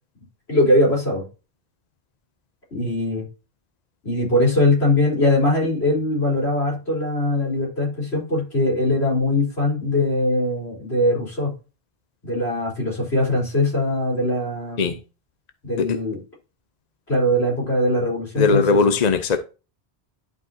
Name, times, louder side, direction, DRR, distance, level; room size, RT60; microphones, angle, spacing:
voice 1, 0.5-1.3 2.7-3.2 4.0-11.5 12.2-14.9 15.6-16.2 17.1-18.9, left 1 dB, 75° left, 4.2 m, -21 dB
voice 2, 18.4-19.4, left 4 dB, 45° left, 0.7 m, -19 dB
11.0 x 4.8 x 2.8 m
omnidirectional pair, 1.1 m